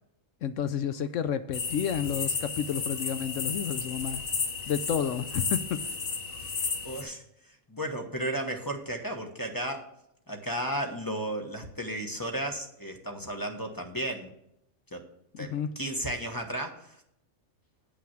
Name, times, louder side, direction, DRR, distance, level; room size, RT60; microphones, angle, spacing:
voice 1, 0.4-4.2 4.7-5.8 15.3-15.7, left 8 dB, 70° left, 12 dB, 0.9 m, -30 dB
sound 1, 1.5-7.0, left 5 dB, 85° left, 1.7 m, -33 dB
voice 2, 6.8-9.9 10.3-14.3 14.9-15.0 15.4-17.0, right 1 dB, 15° left, 3 dB, 1.1 m, -34 dB
8.5 x 5.8 x 7.5 m, 0.78 s
omnidirectional pair, 1.4 m